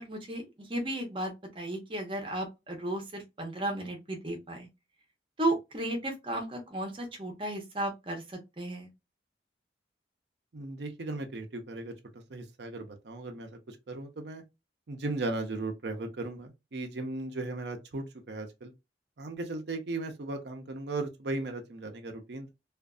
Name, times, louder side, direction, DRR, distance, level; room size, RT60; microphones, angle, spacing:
voice 1, 0.0-4.7 5.4-8.9, right 1 dB, 30° right, 0.8 m, -34 dB
voice 2, 10.5-14.4 14.9-18.7 19.2-22.5, right 2 dB, 75° right, 0.6 m, -37 dB
2.5 x 2.5 x 2.3 m
head